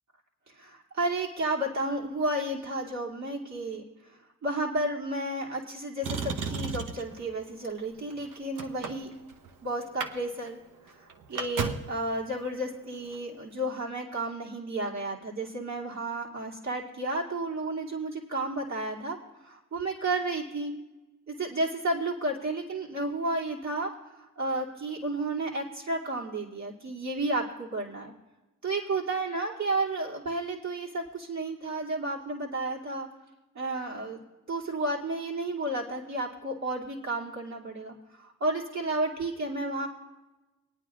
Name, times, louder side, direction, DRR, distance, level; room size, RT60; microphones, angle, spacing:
voice 1, 0.5-3.8 4.1-9.1 9.6-10.6 11.0-19.2 19.4-20.7 21.3-23.9 24.4-28.1 28.6-33.1 33.5-39.9, right 2 dB, 60° right, -3 dB, 2.7 m, -32 dB
Motor vehicle (road), 6.0-7.2 8.0-9.5 9.8-10.1 10.4-10.5 10.9-12.0 13.0-13.2, right 5 dB, 75° right, 0.9 m, -34 dB
26.5 x 9.4 x 2.5 m, 1.1 s
cardioid pair, 60°, 32 cm